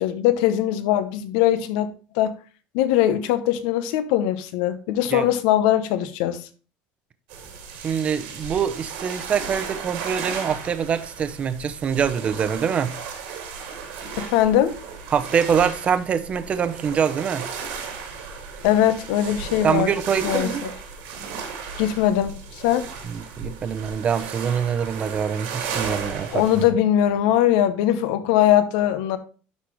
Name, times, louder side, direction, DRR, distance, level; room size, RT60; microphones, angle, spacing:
voice 1, 0.0-2.3 2.7-6.4 14.2-14.8 18.6-19.9 20.2-20.7 21.8-22.9 26.3-29.2, left 11 dB, 85° left, 0.9 m, -21 dB
sound 1, 7.3-26.7, right 6 dB, 85° right, 2.8 m, -35 dB
voice 2, 7.8-12.9 15.1-17.4 19.6-20.6 23.1-26.4, right 7 dB, 30° right, 0.7 m, -24 dB
11.5 x 4.2 x 3.1 m
cardioid pair, 140°, 4 cm